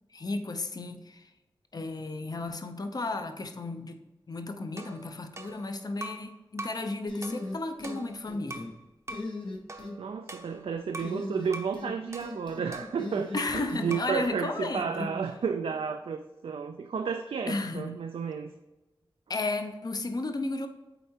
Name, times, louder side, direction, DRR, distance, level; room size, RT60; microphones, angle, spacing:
voice 1, 0.1-1.3 1.7-4.0 4.3-8.7 13.3-15.2 17.5-18.0 19.3-20.7, left 2 dB, 45° left, 7 dB, 0.6 m, -34 dB
sound 1, 4.8-6.3 6.6-6.9 7.2-8.7 9.1-9.3 9.7-11.2 11.5-11.8 12.1-13.7 13.9-14.2, right 1 dB, 30° right, 0.6 m, -43 dB
sound 2, 7.1-8.0 8.3-8.7 9.1-9.9 11.0-11.9 12.2-13.8, left 2 dB, 65° left, 1.1 m, -38 dB
voice 2, 10.0-18.5, right 6 dB, 90° right, 6 dB, 0.4 m, -32 dB
sound 3, 13.5-14.3, left 3 dB, 90° left, 0.5 m, -43 dB
8.0 x 4.3 x 2.8 m, 1.1 s
wide cardioid pair, 95°, 9 cm